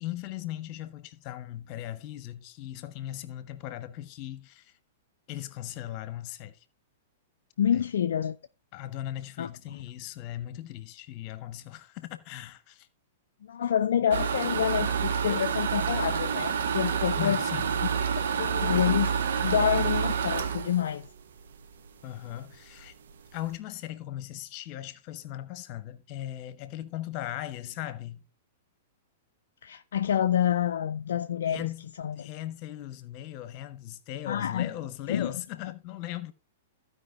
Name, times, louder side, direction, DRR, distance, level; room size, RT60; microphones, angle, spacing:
voice 1, 0.0-4.7 5.3-6.6 7.7-7.8 8.7-12.9 17.2-17.7 22.0-22.9 23.3-28.2 31.5-31.9 32.1-36.3, left 13 dB, 35° left, 1.1 m, -38 dB
voice 2, 7.6-8.4 9.4-9.8 13.4-17.4 18.2-19.1 19.4-21.1 29.6-31.7 32.0-32.3 34.3-34.7 35.1-35.3, left 9 dB, 60° left, 0.4 m, -28 dB
sound 1, 14.1-21.9 22.3-22.4 22.8-22.9 23.1-23.5, right 7 dB, 60° right, 1.1 m, -28 dB
15.5 x 5.2 x 3.7 m
figure-of-eight pair, 105°, 0 cm